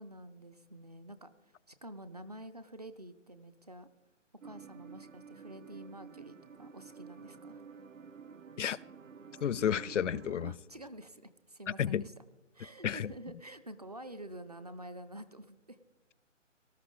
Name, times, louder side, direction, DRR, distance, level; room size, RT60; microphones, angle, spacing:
voice 1, 0.0-3.9 4.4-7.6 10.4-12.1 12.5-15.8, right 1 dB, 35° right, 0.4 m, -49 dB
sound 1, 4.4-10.5, right 6 dB, 80° right, 1.0 m, -51 dB
voice 2, 9.4-10.5 11.8-12.0 12.8-13.1, left 9 dB, 70° left, 0.5 m, -31 dB
18.5 x 13.0 x 3.7 m
figure-of-eight pair, 155°, 38 cm